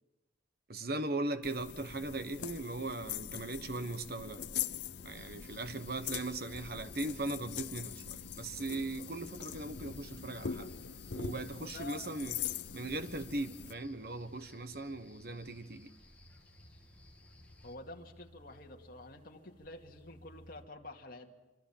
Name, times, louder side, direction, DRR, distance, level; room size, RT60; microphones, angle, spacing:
voice 1, 0.7-4.4 5.0-10.7 11.1-12.4 12.7-15.9, right 2 dB, 55° right, 1.3 m, -39 dB
sound 1, 1.4-13.7, left 8 dB, 70° left, 0.8 m, -42 dB
sound 2, 5.1-17.8, left 1 dB, 10° left, 2.3 m, -59 dB
voice 2, 11.6-12.1 17.6-21.4, left 2 dB, 50° left, 2.4 m, -49 dB
sound 3, 12.5-20.6, equal, 30° left, 4.7 m, -62 dB
26.0 x 25.0 x 7.4 m
head